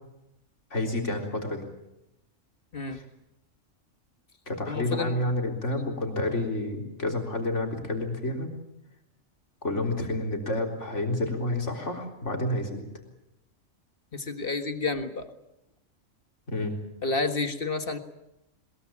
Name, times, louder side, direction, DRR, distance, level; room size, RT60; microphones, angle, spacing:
voice 1, 0.7-1.6 2.9-3.0 4.5-8.5 9.6-12.8 16.5-16.8, left 1 dB, 70° left, 3 dB, 4.1 m, -29 dB
voice 2, 4.7-5.1 14.1-15.3 17.0-18.0, left 3 dB, 45° left, 8 dB, 1.8 m, -30 dB
22.0 x 22.0 x 8.7 m, 0.87 s
omnidirectional pair, 1.3 m